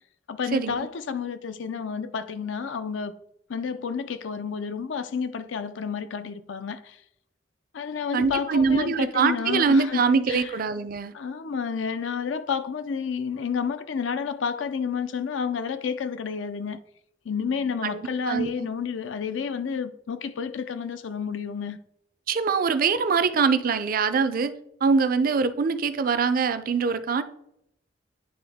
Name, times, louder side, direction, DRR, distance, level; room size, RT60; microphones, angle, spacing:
voice 1, 0.3-3.1 3.5-7.0 7.7-10.0 10.3-10.6 11.1-16.8 17.3-21.8, left 6 dB, 80° left, 0.5 m, -30 dB
voice 2, 8.1-11.1 18.3-18.5 22.3-24.5 24.8-27.2, right 5 dB, 50° right, 0.4 m, -23 dB
10.0 x 3.4 x 3.5 m
head